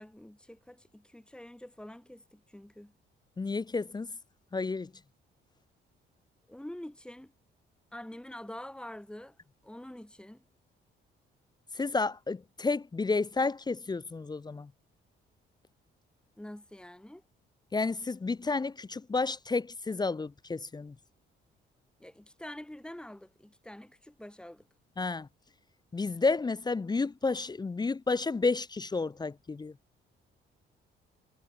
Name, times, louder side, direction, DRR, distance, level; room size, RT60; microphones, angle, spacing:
voice 1, 0.0-2.9 6.5-7.3 7.9-9.4 9.6-10.4 16.4-17.2 22.0-24.6, left 1 dB, 5° left, 3.4 m, -46 dB
voice 2, 3.4-4.1 4.5-4.9 11.8-14.7 17.7-20.9 25.0-25.3 25.9-29.7, left 3 dB, 20° left, 0.7 m, -31 dB
cardioid pair, 90°, 20 cm